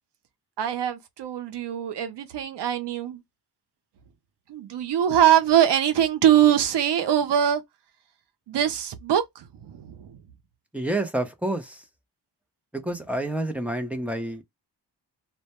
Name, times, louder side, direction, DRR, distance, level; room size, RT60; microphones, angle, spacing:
voice 1, 0.6-3.2 4.5-7.6 8.5-10.2, right 10 dB, 80° right, 0.6 m, -22 dB
voice 2, 10.7-11.8 12.7-14.4, right 1 dB, 5° right, 0.5 m, -28 dB
2.1 x 2.1 x 2.8 m
wide cardioid pair, 100°, 41 cm